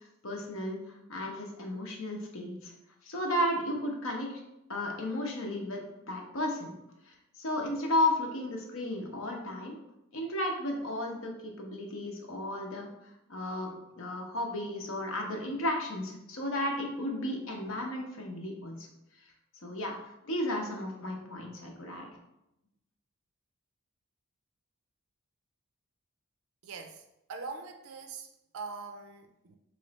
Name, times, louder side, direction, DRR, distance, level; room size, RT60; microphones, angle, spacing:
voice 1, 0.0-2.7 3.0-4.4 4.7-5.8 6.1-6.7 7.1-9.8 10.1-18.9 19.6-20.0 20.2-22.1, left 1 dB, 70° left, 0 dB, 0.8 m, -34 dB
voice 2, 26.6-27.0 27.3-28.3 28.5-29.6, right 4 dB, 80° right, 6 dB, 0.4 m, -42 dB
3.2 x 3.1 x 4.0 m, 0.87 s
head